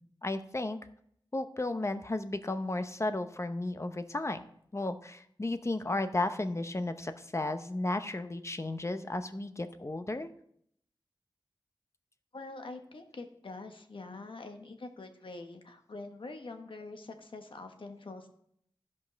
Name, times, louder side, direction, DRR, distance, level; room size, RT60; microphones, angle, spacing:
voice 1, 0.2-0.8 1.3-4.4 4.7-10.3, left 2 dB, 35° left, 9 dB, 0.8 m, -34 dB
voice 2, 12.3-18.3, left 3 dB, 75° left, 5 dB, 1.2 m, -45 dB
13.5 x 5.4 x 5.1 m, 0.71 s
wide cardioid pair, 50°, 9 cm